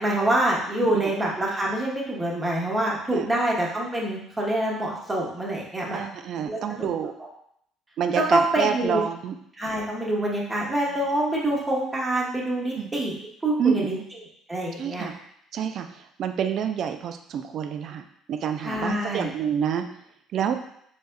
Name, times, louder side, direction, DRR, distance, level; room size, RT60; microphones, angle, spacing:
voice 1, 0.0-6.0 6.3-6.9 8.3-9.0 9.6-13.1 13.4-14.0 14.5-15.1 18.6-19.3, right 1 dB, 20° right, -3 dB, 1.1 m, -26 dB
voice 2, 5.9-7.1 8.0-9.4 12.8-12.9 13.6-13.9 14.8-15.1 15.5-15.9 16.2-18.0 18.3-19.9 20.3-20.5, right 8 dB, 50° right, 7 dB, 0.3 m, -27 dB
4.0 x 3.3 x 2.2 m, 0.70 s
figure-of-eight pair, 55°, 0 cm